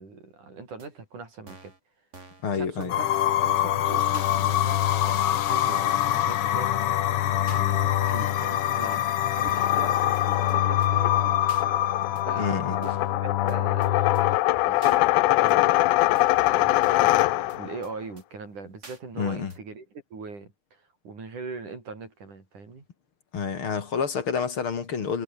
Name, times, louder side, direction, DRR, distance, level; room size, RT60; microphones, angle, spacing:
voice 1, 0.0-1.7 2.5-3.1 3.4-6.7 7.5-9.1 9.3-11.3 11.7-11.9 12.3-15.8 16.5-19.9 20.1-22.9, right 4 dB, 75° right, 7.6 m, -41 dB
sound 1, 0.8-0.9 1.5-1.8 2.1-2.5 2.8-2.9 3.1-3.2 3.5-3.6 4.1-4.3 4.8-4.9 5.5-5.8 6.1-6.2 6.5-6.6 6.8-6.9 7.5-7.6 8.1-8.2 8.8-9.1 9.5-9.8 10.1-10.2 10.5-10.6 10.8-10.9 11.5-11.7 12.2-12.3 12.8-13.1 13.5-13.6 13.8-13.9 14.2-14.3 14.8-15.0 15.5-15.6 16.2-16.5 16.8-17.2 17.5-17.6 17.8-17.9 18.2-18.3 18.8-19.0 19.5-19.6, right 3 dB, 20° right, 3.5 m, -47 dB
voice 2, 2.4-3.0 12.4-12.8 19.2-19.5 23.3-25.2, left 6 dB, 45° left, 3.0 m, -28 dB
sound 2, 2.9-14.4, left 12 dB, 60° left, 1.7 m, -24 dB
sound 3, 9.5-17.8, left 18 dB, 80° left, 2.2 m, -24 dB
omnidirectional pair, 3.5 m